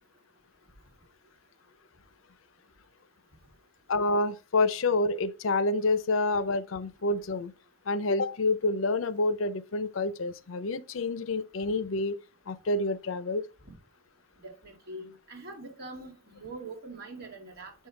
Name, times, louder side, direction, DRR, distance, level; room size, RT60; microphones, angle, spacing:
voice 1, 3.9-7.5 7.9-12.2 12.5-13.4, left 2 dB, 75° left, 0.6 m, -28 dB
voice 2, 14.4-17.7, right 2 dB, 55° right, 2.3 m, -43 dB
7.6 x 5.5 x 3.2 m
head